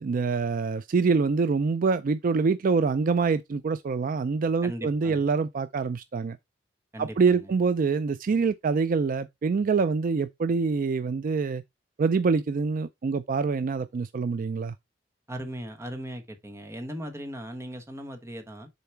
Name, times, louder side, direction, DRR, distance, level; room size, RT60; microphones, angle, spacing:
voice 1, 0.0-6.4 7.0-11.6 12.0-14.7, right 4 dB, 45° right, 0.4 m, -25 dB
voice 2, 4.6-5.2 6.9-7.5 15.3-18.7, equal, 15° right, 1.2 m, -38 dB
6.9 x 4.1 x 4.5 m
head